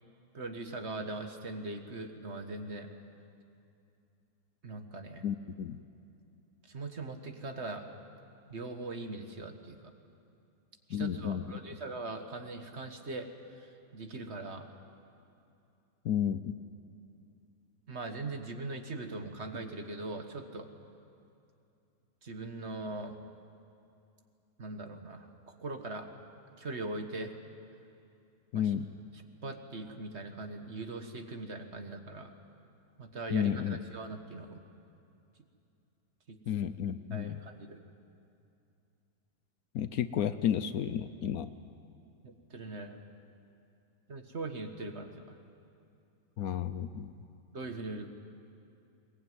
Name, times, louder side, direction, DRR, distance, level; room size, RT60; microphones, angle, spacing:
voice 1, 0.3-2.9 4.6-5.2 6.7-7.8 8.5-9.9 10.9-13.3 13.6-14.7 17.9-20.7 22.2-23.1 24.6-26.1 26.6-27.4 28.5-28.7 29.4-32.3 33.0-34.6 36.3-36.4 37.1-37.8 42.2-43.0 44.1-45.4 47.5-48.1, right 2 dB, 45° right, 6 dB, 1.6 m, -41 dB
voice 2, 5.2-5.8 10.9-11.6 16.0-16.6 28.5-28.9 33.3-33.8 36.5-37.4 39.7-41.5 46.4-47.1, left 9 dB, 65° left, 12 dB, 1.1 m, -32 dB
21.5 x 21.0 x 9.4 m, 2.6 s
omnidirectional pair, 1.7 m